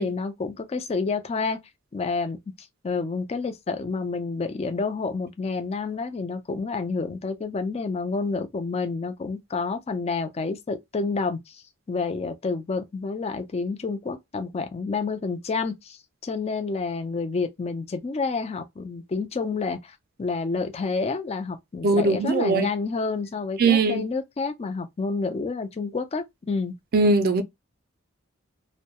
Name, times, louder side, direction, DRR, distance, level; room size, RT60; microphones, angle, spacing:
voice 1, 0.0-1.6 1.9-2.4 2.8-11.6 11.9-16.0 16.2-26.8, left 4 dB, 30° left, 0.4 m, -29 dB
voice 2, 21.8-22.7 23.6-24.0 26.9-27.4, right 3 dB, 45° right, 0.5 m, -20 dB
2.2 x 2.1 x 2.8 m
head